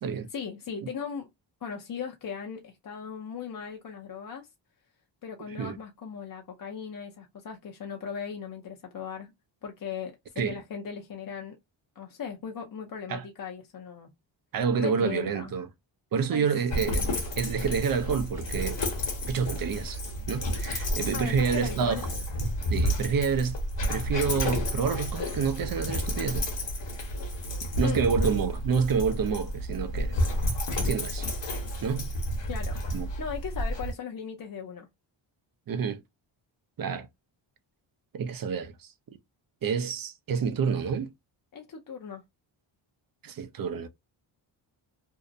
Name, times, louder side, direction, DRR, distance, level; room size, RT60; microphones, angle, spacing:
voice 1, 0.3-1.3 1.6-4.5 5.2-9.3 9.6-11.6 12.0-14.1 14.8-15.5 16.3-16.4 16.7-16.9 21.1-22.0 27.8-28.0 32.5-32.8 33.2-34.9 41.5-42.2, left 6 dB, 45° left, 0.6 m, -38 dB
voice 2, 5.5-5.8 10.4-10.6 13.1-13.3 14.5-15.7 16.1-17.0 17.4-18.8 19.3-20.0 20.3-22.0 22.7-23.6 23.9-26.5 27.8-30.2 30.8-31.3 31.8-32.1 32.9-33.1 35.7-36.0 36.8-37.1 38.1-38.9 39.6-41.1 43.2-43.9, right 6 dB, 45° right, 0.6 m, -28 dB
Dog, 16.7-33.9, equal, 60° left, 1.2 m, -31 dB
2.7 x 2.0 x 2.5 m
cardioid pair, 70°, 49 cm